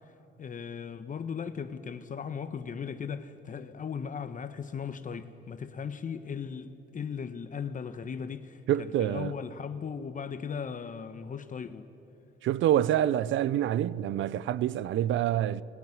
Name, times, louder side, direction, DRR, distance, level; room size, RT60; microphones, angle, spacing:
voice 1, 0.4-11.9, left 6 dB, 40° left, 1.0 m, -37 dB
voice 2, 8.7-9.3 12.4-15.6, right 11 dB, 75° right, 0.6 m, -26 dB
20.5 x 16.5 x 9.7 m
cardioid pair, 90°, 20 cm